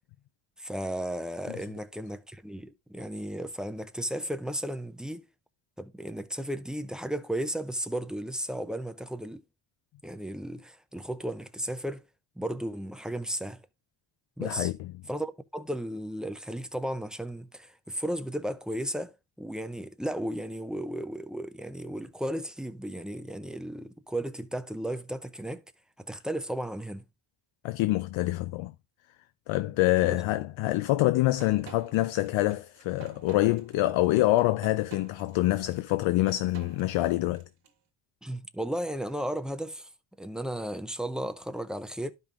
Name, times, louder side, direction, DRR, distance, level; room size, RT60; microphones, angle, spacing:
voice 1, 0.6-5.3 5.8-9.4 10.0-12.0 12.4-13.6 14.4-14.7 15.1-25.6 26.0-27.0 30.0-30.2 34.7-34.8 38.2-39.9 40.2-42.1, right 1 dB, ahead, 0.4 m, -34 dB
voice 2, 14.4-14.9 27.6-28.7 29.5-37.4, left 17 dB, 80° left, 0.6 m, -26 dB
sound 1, 31.4-37.7, right 7 dB, 70° right, 1.6 m, -50 dB
12.0 x 5.4 x 2.4 m
cardioid pair, 120°, 45 cm